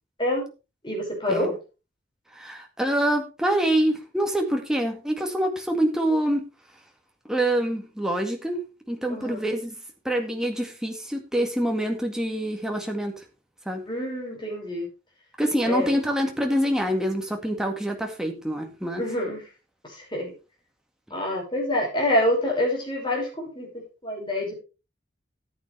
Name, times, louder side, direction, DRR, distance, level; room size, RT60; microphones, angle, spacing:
voice 1, 0.8-1.5 9.1-9.4 13.9-14.9 15.7-15.9 19.0-19.4 19.8-20.3 21.1-23.7 24.0-24.6, left 1 dB, 25° left, -1 dB, 5.9 m, -26 dB
voice 2, 2.3-6.4 7.3-9.8 10.0-13.2 13.7-13.8 15.4-19.0, right 1 dB, 5° right, 2 dB, 2.0 m, -26 dB
14.0 x 8.7 x 3.4 m, 0.31 s
head